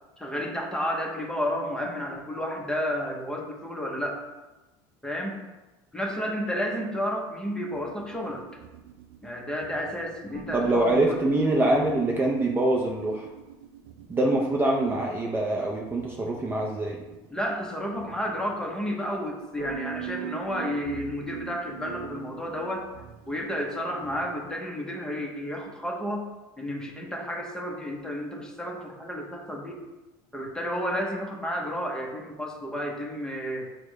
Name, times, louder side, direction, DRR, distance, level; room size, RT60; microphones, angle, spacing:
voice 1, 0.2-4.2 5.0-5.4 5.9-8.4 9.2-11.3 11.5-11.7 16.3-16.4 17.3-22.9 23.3-26.3 26.6-29.8 30.3-33.7, equal, 5° left, 0 dB, 0.8 m, -31 dB
sound 1, 7.7-18.9 19.5-24.5, right 9 dB, 70° right, 0.5 m, -43 dB
voice 2, 10.5-13.3 14.1-17.0, right 2 dB, 20° right, -1 dB, 0.5 m, -24 dB
4.7 x 2.1 x 4.6 m, 1.1 s
supercardioid pair, 110°, 10 cm